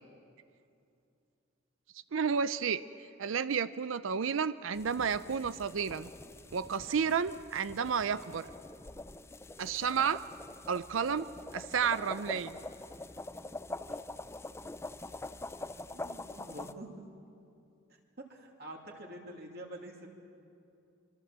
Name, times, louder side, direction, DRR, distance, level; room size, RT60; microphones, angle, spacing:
voice 1, 2.1-2.8 3.2-6.1 6.5-8.5 9.6-10.2 10.7-11.3 11.5-12.6, right 6 dB, 85° right, 14 dB, 0.5 m, -31 dB
sound 1, 4.7-16.7, left 2 dB, 15° left, 0.5 m, -45 dB
voice 2, 15.9-16.9 18.2-20.1, right 1 dB, 50° right, 1 dB, 2.6 m, -46 dB
25.5 x 23.5 x 7.5 m, 2.6 s
head